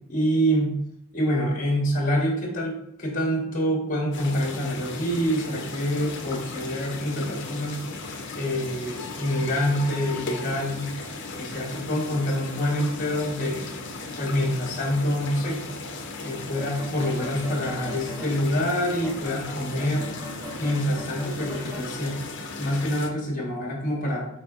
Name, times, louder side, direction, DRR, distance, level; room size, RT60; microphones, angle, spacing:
voice 1, 0.1-0.8 1.1-7.8 8.3-10.9 11.3-13.7 14.2-15.6 16.2-20.1 20.6-22.2 22.6-24.3, equal, 35° left, 0 dB, 1.0 m, -26 dB
sound 1, 4.1-23.1, left 3 dB, 55° left, 0.6 m, -36 dB
sound 2, 16.6-18.4 19.0-21.9, equal, 10° right, 0.5 m, -40 dB
4.5 x 4.1 x 2.4 m, 0.77 s
head